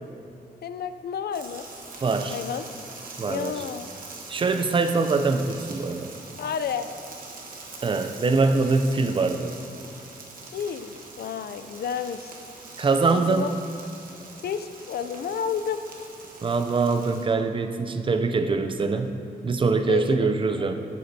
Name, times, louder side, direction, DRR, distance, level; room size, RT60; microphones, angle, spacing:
voice 1, 0.6-1.7 2.3-2.7 3.3-3.9 6.4-6.9 10.5-12.3 13.1-13.5 14.4-15.8 19.9-20.3 20.6-20.7, left 7 dB, 80° left, 10 dB, 0.4 m, -31 dB
sound 1, 1.3-17.3, right 3 dB, 60° right, 1.0 m, -43 dB
voice 2, 2.0-2.4 3.2-3.6 4.3-6.1 7.8-9.5 12.8-13.5 16.4-20.7, right 4 dB, 30° right, 7 dB, 0.4 m, -23 dB
10.5 x 8.1 x 2.7 m, 2.6 s
wide cardioid pair, 170°, 16 cm